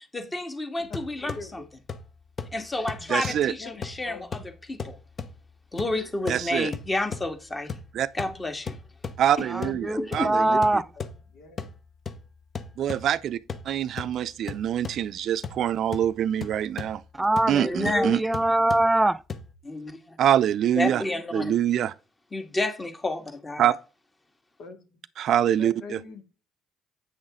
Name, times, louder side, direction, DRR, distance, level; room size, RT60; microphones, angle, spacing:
voice 1, 0.0-1.6 2.5-4.4 4.7-5.0 5.7-7.7 8.1-8.8 9.4-9.5 10.0-10.3 17.5-18.1 19.6-20.2 20.8-21.5 22.3-23.7, left 2 dB, 25° left, 1.9 m, -30 dB
sound 1, 0.8-19.5, left 5 dB, 45° left, 1.0 m, -40 dB
voice 2, 3.1-3.5 6.3-6.7 7.9-8.1 9.2-10.6 12.8-13.4 13.7-17.0 17.5-18.2 20.2-21.0 21.3-21.9 23.6-23.7 25.2-26.0, right 10 dB, 65° right, 0.5 m, -25 dB
voice 3, 4.0-4.4 9.5-9.7 10.2-10.9 11.3-11.7 24.6-25.2 25.6-26.2, left 4 dB, 70° left, 2.1 m, -42 dB
voice 4, 9.5-10.8 17.1-19.2, right 1 dB, 15° right, 0.5 m, -23 dB
8.6 x 6.3 x 3.8 m
supercardioid pair, 65°, 0 cm